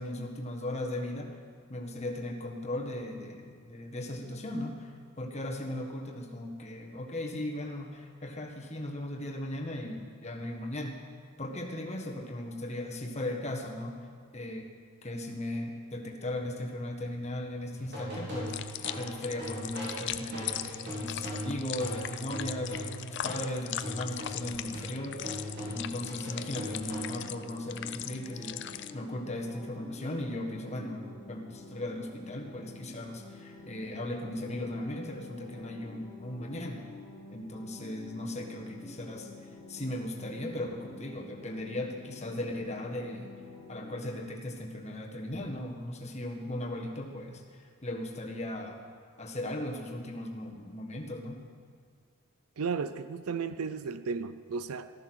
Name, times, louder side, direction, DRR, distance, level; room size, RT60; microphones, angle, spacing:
voice 1, 0.0-1.4 1.7-10.9 11.4-14.0 14.3-14.7 15.0-36.8 37.3-39.3 39.7-43.3 43.7-47.4 47.8-48.8 49.2-51.4, left 1 dB, 30° left, 1 dB, 1.6 m, -37 dB
sound 1, 17.8-23.5 23.8-27.4, equal, 50° right, 5.4 m, -40 dB
sound 2, 18.5-28.9, left 11 dB, 50° left, 0.5 m, -39 dB
sound 3, 24.3-43.9, left 2 dB, 10° right, 4.2 m, -49 dB
voice 2, 52.6-54.9, right 5 dB, 80° right, 12 dB, 0.5 m, -34 dB
14.5 x 13.0 x 6.3 m, 2.1 s
head